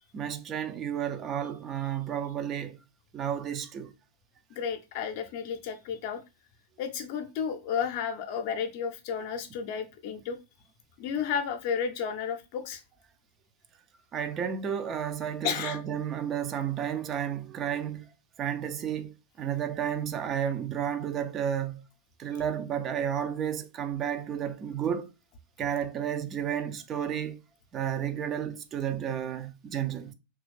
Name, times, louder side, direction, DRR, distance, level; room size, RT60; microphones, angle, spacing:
voice 1, 0.1-2.8 3.1-3.9 14.1-18.1 18.4-21.8 22.2-25.1 25.6-27.4 27.7-30.1, right 9 dB, 30° right, 0.3 m, -32 dB
voice 2, 4.6-6.2 6.8-10.4 11.0-12.8 15.4-15.8, left 7 dB, 45° left, 0.5 m, -32 dB
3.0 x 2.3 x 3.2 m
figure-of-eight pair, 90°, 0 cm